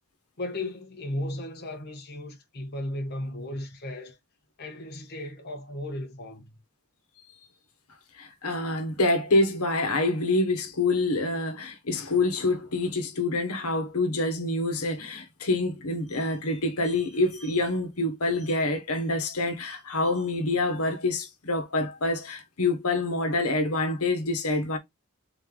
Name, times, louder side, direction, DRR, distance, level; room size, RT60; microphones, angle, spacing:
voice 1, 0.4-4.2 4.6-6.6, left 1 dB, 45° left, 1.1 m, -35 dB
voice 2, 8.2-24.8, left 2 dB, 85° left, 1.2 m, -26 dB
4.0 x 3.3 x 3.7 m
head